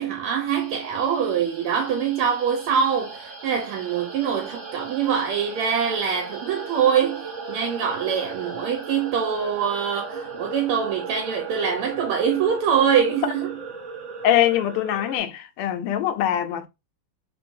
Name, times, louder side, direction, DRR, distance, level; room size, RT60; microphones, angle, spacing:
voice 1, 0.0-13.6, right 7 dB, 85° right, 1.6 m, -24 dB
sound 1, 0.5-15.2, right 4 dB, 50° right, 0.9 m, -37 dB
voice 2, 14.2-16.7, left 11 dB, 85° left, 1.5 m, -23 dB
3.7 x 3.1 x 2.6 m
omnidirectional pair, 2.4 m